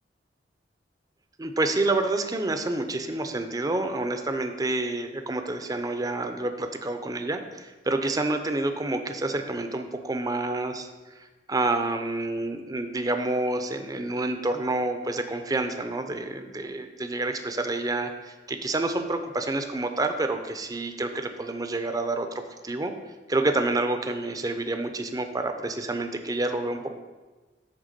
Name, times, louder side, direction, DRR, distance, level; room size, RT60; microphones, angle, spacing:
voice 1, 1.4-10.9 11.5-22.9 23.3-26.9, right 2 dB, 20° right, 7 dB, 0.5 m, -28 dB
8.9 x 3.5 x 6.6 m, 1.3 s
head